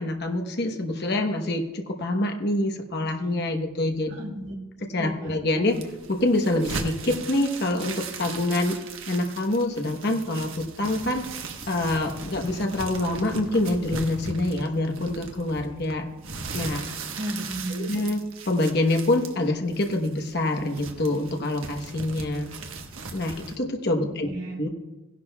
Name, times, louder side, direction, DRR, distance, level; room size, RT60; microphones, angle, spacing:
voice 1, 0.0-4.1 4.9-5.7 6.1-8.8 9.1-16.1 16.5-16.8 17.7-22.5 23.1-24.3 24.6-24.7, left 1 dB, 50° left, 3 dB, 1.1 m, -26 dB
voice 2, 4.1-4.6 5.0-5.3 17.2-17.9 24.0-24.6, right 1 dB, 55° right, 0 dB, 2.3 m, -34 dB
sound 1, 5.7-23.6, right 4 dB, 80° right, 1.2 m, -38 dB
16.5 x 11.0 x 2.4 m, 1.1 s
head